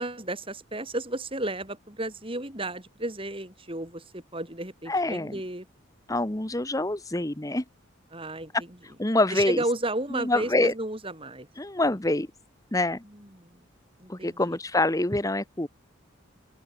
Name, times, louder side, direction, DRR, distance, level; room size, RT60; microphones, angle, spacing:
voice 1, 0.0-5.7 8.1-8.5 9.3-11.5 13.0-13.6 14.0-14.6, right 1 dB, 25° right, 5.3 m, -33 dB
voice 2, 4.9-5.4 6.1-7.6 9.0-9.6 10.2-10.7 11.6-12.3 12.7-13.0 14.1-15.7, left 2 dB, 15° left, 1.1 m, -25 dB
open air
head